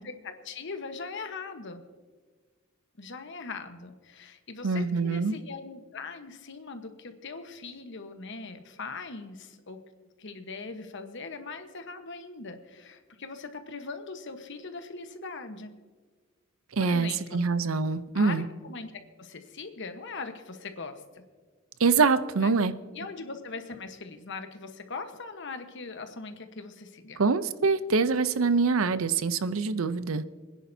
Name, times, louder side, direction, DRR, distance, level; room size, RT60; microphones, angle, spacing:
voice 1, 0.2-1.8 3.0-9.8 10.2-15.7 16.8-17.4 18.1-18.9 19.2-21.2 22.4-22.5 22.9-27.2, left 4 dB, 60° left, 7 dB, 1.2 m, -40 dB
voice 2, 4.6-5.4 16.7-18.5 21.8-22.7 27.2-30.2, right 4 dB, 80° right, 14 dB, 0.6 m, -25 dB
25.5 x 10.0 x 2.8 m, 1.4 s
head